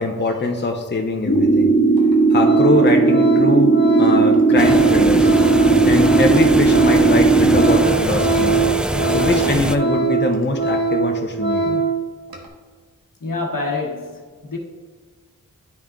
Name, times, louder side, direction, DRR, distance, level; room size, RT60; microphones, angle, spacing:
voice 1, 0.0-1.7 2.3-5.3 5.8-8.6 9.1-11.8, left 2 dB, 30° left, 0.7 m, -22 dB
sound 1, 1.2-7.8, right 3 dB, 50° left, 1.3 m, -15 dB
Organ, 1.4-1.5 2.0-2.1 2.4-12.0 12.3-12.5, right 4 dB, 90° right, 1.0 m, -22 dB
sound 2, 4.6-9.8, right 1 dB, 5° right, 0.3 m, -24 dB
voice 2, 13.2-14.6, left 3 dB, 70° left, 1.2 m, -27 dB
10.5 x 3.5 x 3.7 m
cardioid pair, 50°, 35 cm